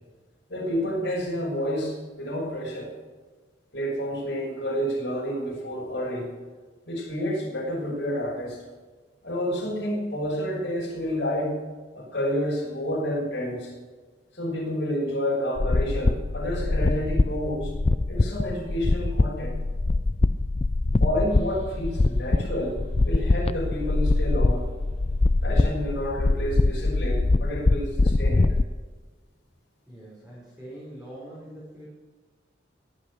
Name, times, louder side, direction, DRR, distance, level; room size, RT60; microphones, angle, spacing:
voice 1, 0.5-2.9 3.7-6.3 6.9-8.6 9.2-11.6 11.9-13.7 14.3-17.7 18.1-19.5 21.0-22.8 23.0-24.7 25.4-28.5, equal, 60° left, -4 dB, 6.1 m, -29 dB
sound 1, 15.6-28.6, left 2 dB, 30° left, 0.4 m, -23 dB
sound 2, 21.3-26.8, equal, 35° right, 5.3 m, -46 dB
voice 2, 29.9-31.9, right 1 dB, 5° right, -8 dB, 5.2 m, -43 dB
22.0 x 8.9 x 6.5 m, 1.3 s
head